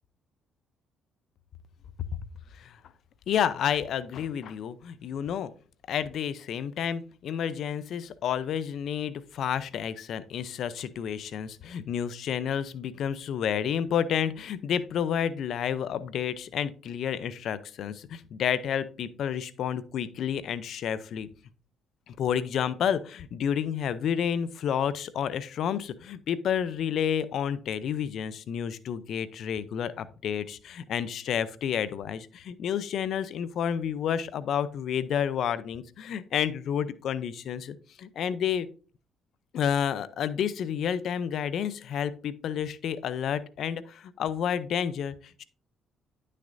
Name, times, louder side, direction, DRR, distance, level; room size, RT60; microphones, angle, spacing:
voice 1, 3.3-5.5 5.9-21.3 22.1-38.7 39.5-45.4, left 8 dB, 65° left, 16 dB, 0.5 m, -30 dB
9.7 x 6.5 x 2.6 m, 0.39 s
supercardioid pair, 70°, 0 cm